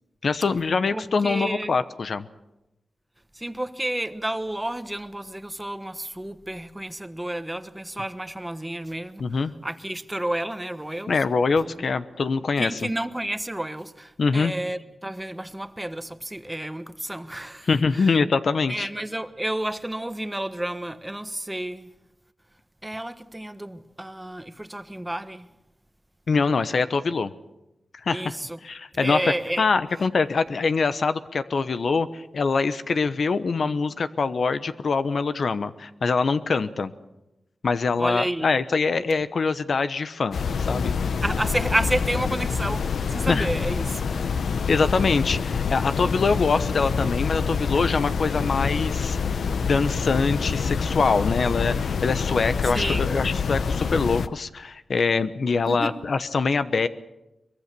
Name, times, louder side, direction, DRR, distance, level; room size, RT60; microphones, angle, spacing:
voice 1, 0.2-2.3 9.2-9.5 11.1-12.9 14.2-14.5 17.7-18.9 26.3-27.3 28.0-28.3 28.6-29.2 29.6-36.9 37.6-40.4 40.7-41.0 43.3-43.5 44.7-49.2 49.6-56.9, left 4 dB, 70° left, 1.0 m, -24 dB
voice 2, 0.9-1.8 3.3-9.3 9.6-11.1 11.6-11.8 12.6-18.2 18.7-21.9 22.8-25.5 28.1-28.6 28.9-29.7 38.0-38.5 41.2-44.4 52.6-53.1 55.7-56.0, right 1 dB, 15° right, 1.3 m, -31 dB
sound 1, 40.3-54.3, left 5 dB, 85° left, 0.8 m, -26 dB
23.0 x 21.5 x 6.9 m
cardioid pair, 65°, 0 cm